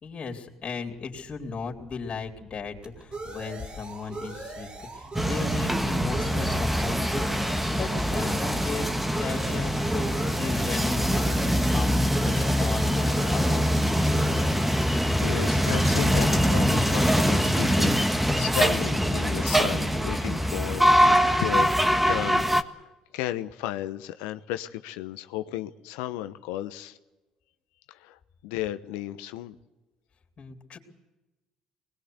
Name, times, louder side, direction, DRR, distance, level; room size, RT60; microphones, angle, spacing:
voice 1, 0.0-7.3 7.7-8.9 9.2-14.2 30.4-30.8, left 5 dB, 45° left, 4 dB, 3.9 m, -36 dB
sound 1, 1.2-16.6, right 2 dB, 35° right, 4.2 m, -40 dB
sound 2, 5.1-22.6, equal, 5° right, 1.7 m, -23 dB
voice 2, 14.9-18.0 18.4-21.7 22.1-22.4 22.8-27.0 27.9-29.5, left 13 dB, 80° left, 11 dB, 1.1 m, -34 dB
24.5 x 20.5 x 8.1 m, 1.1 s
hypercardioid pair, 55°, 3 cm